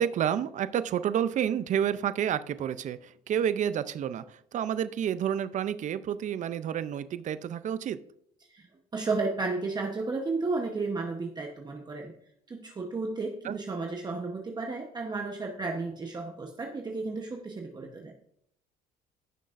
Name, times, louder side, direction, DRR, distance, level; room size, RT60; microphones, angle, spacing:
voice 1, 0.0-8.0 13.4-13.6, right 9 dB, 45° right, 14 dB, 0.5 m, -29 dB
voice 2, 8.9-12.1 12.5-18.1, right 3 dB, 25° right, 2 dB, 1.0 m, -33 dB
15.5 x 6.2 x 2.5 m, 0.69 s
cardioid pair, 110°, 17 cm